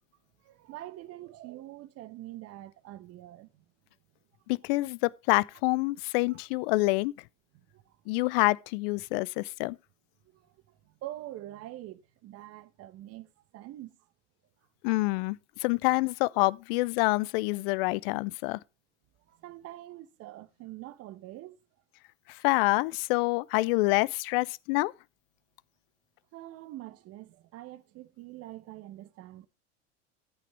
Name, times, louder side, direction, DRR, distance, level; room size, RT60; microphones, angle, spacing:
voice 1, 0.4-3.6 6.3-6.4 7.5-8.0 10.3-14.0 14.9-15.0 19.3-21.6 26.3-29.5, right 15 dB, 40° right, 1.1 m, -45 dB
voice 2, 4.5-7.1 8.1-9.8 14.8-18.6 22.3-24.9, left 22 dB, 50° left, 0.6 m, -27 dB
14.5 x 8.5 x 3.2 m
figure-of-eight pair, 80°, 36 cm